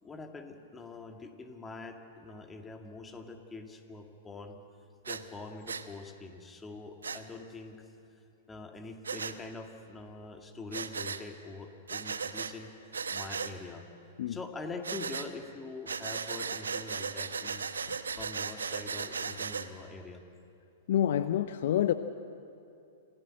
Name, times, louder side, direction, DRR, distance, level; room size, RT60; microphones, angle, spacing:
voice 1, 0.0-4.6 5.1-7.8 8.5-12.7 13.1-13.8 14.3-17.6 18.2-20.2, left 3 dB, 15° left, 4 dB, 2.1 m, -44 dB
Breathing, 5.0-5.2 5.7-5.8 7.0-7.2 9.0-9.3 10.7-11.2 11.9-12.5 12.9-13.5 14.8-15.3 15.9-19.7, right 5 dB, 75° right, 1.0 m, -36 dB
voice 2, 20.9-21.9, left 11 dB, 55° left, 12 dB, 0.6 m, -27 dB
27.5 x 15.5 x 7.7 m, 2.7 s
figure-of-eight pair, 105°, 0 cm